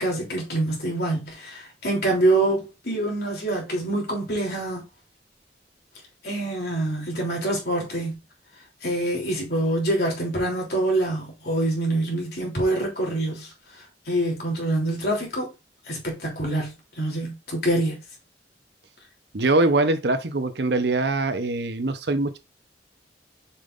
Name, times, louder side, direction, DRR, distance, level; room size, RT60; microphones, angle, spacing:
voice 1, 0.0-4.9 6.2-8.2 8.8-13.5 14.1-15.5 15.9-17.9, right 1 dB, 60° left, 3.2 m, -25 dB
voice 2, 19.3-22.4, right 2 dB, 70° right, 0.8 m, -23 dB
6.9 x 5.4 x 2.5 m
head